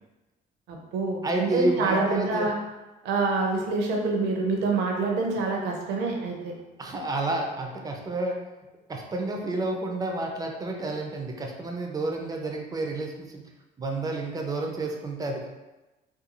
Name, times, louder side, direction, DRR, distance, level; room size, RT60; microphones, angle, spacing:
voice 1, 0.7-2.6 3.0-6.5, right 3 dB, 80° right, 1 dB, 0.6 m, -26 dB
voice 2, 1.2-2.5 6.8-8.4 8.9-13.4 13.8-15.5, right 2 dB, 20° right, 2 dB, 0.4 m, -30 dB
2.5 x 2.3 x 2.9 m, 1.1 s
cardioid pair, 110°, 17 cm